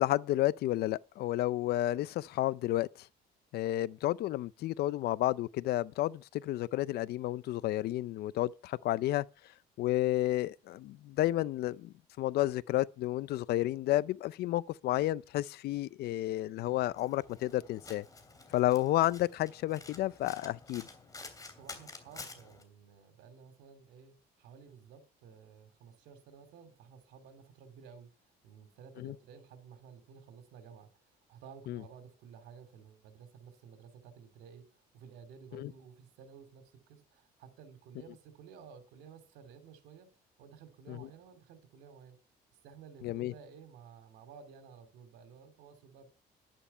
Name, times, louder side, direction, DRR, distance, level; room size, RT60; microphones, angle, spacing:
voice 1, 0.0-2.9 3.5-9.2 9.8-18.0 18.5-20.8 29.0-29.1 31.7-31.8 35.5-35.7 40.9-41.0 43.0-43.3, left 15 dB, 70° left, 0.5 m, -31 dB
Domestic sounds home sounds, 16.6-22.6, left 3 dB, 20° left, 2.9 m, -50 dB
voice 2, 21.5-28.1 28.4-34.6 34.9-40.1 40.4-42.2 42.6-46.1, right 6 dB, 90° right, 3.0 m, -54 dB
11.0 x 10.5 x 5.5 m
cardioid pair, 110°, 17 cm